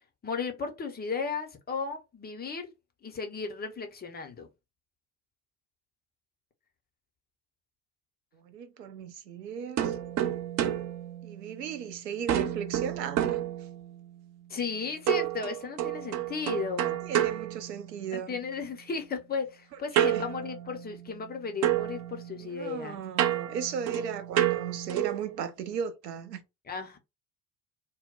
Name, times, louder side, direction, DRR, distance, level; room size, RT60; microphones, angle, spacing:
voice 1, 0.2-2.7 3.0-4.5 14.5-17.1 18.1-23.0 26.7-27.0, left 5 dB, 20° left, 0.6 m, -35 dB
voice 2, 8.3-10.0 11.2-13.7 16.8-18.4 19.9-20.3 22.4-26.4, right 7 dB, 85° right, 0.6 m, -36 dB
sound 1, 9.8-11.9 12.3-14.1 15.1-18.3 19.9-21.3 21.6-25.3, right 12 dB, 35° right, 0.4 m, -30 dB
2.1 x 2.0 x 3.7 m
figure-of-eight pair, 60°, 48 cm